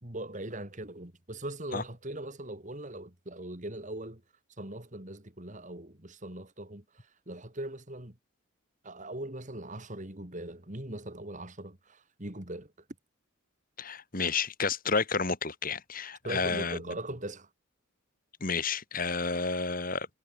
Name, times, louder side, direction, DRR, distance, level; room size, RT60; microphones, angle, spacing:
voice 1, 0.0-4.2 4.6-8.2 8.8-12.7 16.2-17.5, right 1 dB, 35° right, 2.9 m, -40 dB
voice 2, 13.8-16.8 18.4-20.1, left 4 dB, 45° left, 3.3 m, -31 dB
head